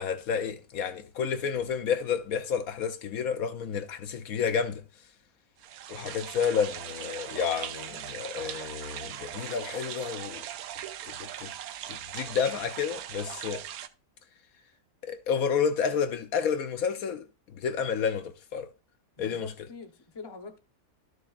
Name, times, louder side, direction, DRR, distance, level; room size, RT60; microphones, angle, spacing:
voice 1, 0.0-4.8 5.9-10.4 11.2-11.5 11.9-13.6 15.0-17.3 17.5-18.7 19.2-19.5, left 6 dB, 70° left, 1.0 m, -30 dB
sound 1, 5.6-13.9, right 11 dB, 75° right, 1.0 m, -40 dB
voice 2, 19.2-20.6, left 4 dB, 20° left, 0.7 m, -43 dB
12.5 x 6.5 x 2.4 m
omnidirectional pair, 1.6 m